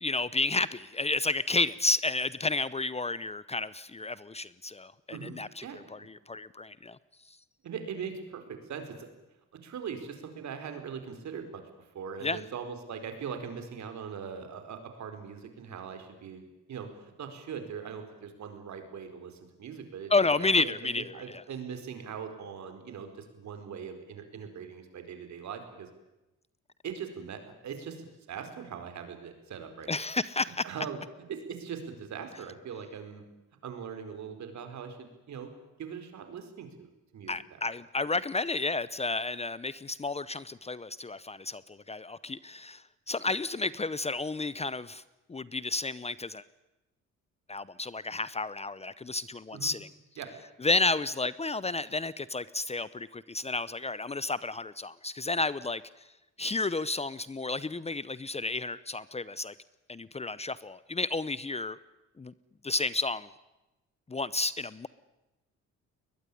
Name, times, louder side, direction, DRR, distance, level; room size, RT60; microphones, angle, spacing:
voice 1, 0.0-5.6 5.9-7.0 12.2-12.4 20.1-21.4 29.9-30.6 37.3-45.0 45.3-46.4 47.5-49.9 50.6-55.8 56.4-59.5 59.9-61.8 62.2-62.3 62.6-63.3 64.1-64.9, left 3 dB, 20° left, 18 dB, 0.8 m, -31 dB
voice 2, 7.6-9.1 9.5-25.9 26.8-29.9 30.6-33.3 33.6-35.5 35.8-37.3 49.5-49.7 50.2-50.3, right 7 dB, 65° right, 7 dB, 4.6 m, -41 dB
21.0 x 21.0 x 10.0 m, 1.0 s
cardioid pair, 90°, 30 cm